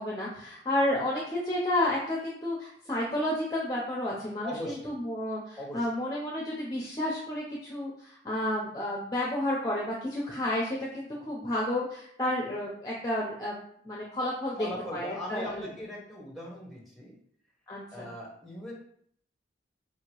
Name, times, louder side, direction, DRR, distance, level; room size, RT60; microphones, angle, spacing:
voice 1, 0.0-13.6 13.8-15.7 17.7-18.1, left 1 dB, 20° left, -4 dB, 0.6 m, -31 dB
voice 2, 4.4-4.9 5.6-5.9 14.6-17.2 17.9-18.7, left 1 dB, ahead, -3 dB, 0.9 m, -39 dB
4.5 x 2.8 x 3.0 m, 0.65 s
head